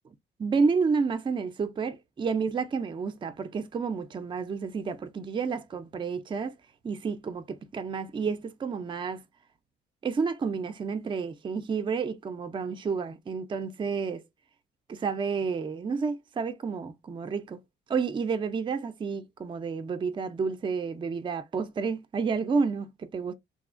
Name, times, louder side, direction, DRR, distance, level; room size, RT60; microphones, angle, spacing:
voice 1, 0.4-6.6 6.8-9.2 10.0-14.2 14.9-17.6 17.9-23.3, right 5 dB, 25° right, 0.4 m, -30 dB
2.8 x 2.3 x 2.4 m
cardioid pair, 90°, 20 cm